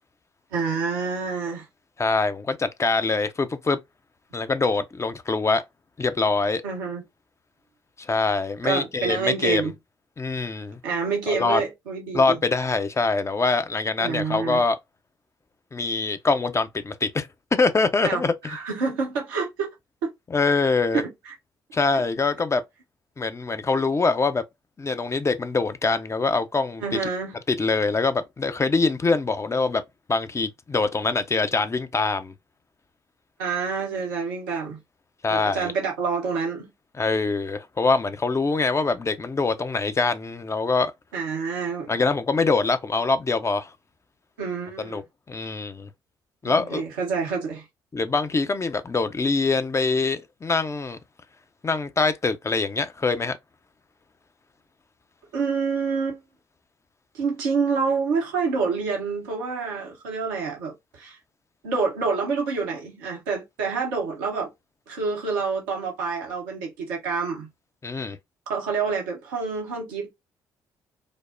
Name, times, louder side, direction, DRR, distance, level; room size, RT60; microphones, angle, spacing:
voice 1, 0.5-1.7 6.6-7.0 8.6-9.7 10.8-12.4 14.0-14.6 18.0-19.7 20.0-20.1 20.9-21.3 21.9-22.0 26.8-27.4 33.4-34.8 35.3-36.7 41.1-41.9 44.4-45.0 46.4-47.6 55.3-56.2 57.1-61.2 61.6-64.5 64.9-67.5 68.5-70.1, right 5 dB, 80° right, 1.0 m, -27 dB
voice 2, 2.0-3.8 4.3-5.6 6.0-6.6 8.0-9.7 10.2-10.8 11.3-11.6 12.1-14.8 15.7-18.6 20.3-21.0 21.7-22.6 23.2-24.4 24.8-26.8 27.5-29.8 30.1-32.3 35.2-35.7 37.0-40.9 41.9-43.7 44.8-45.0 45.3-45.9 46.4-46.8 47.9-51.0 51.6-53.4 67.8-68.2, left 3 dB, 25° left, 0.6 m, -24 dB
5.1 x 2.0 x 2.6 m
hypercardioid pair, 45°, 11 cm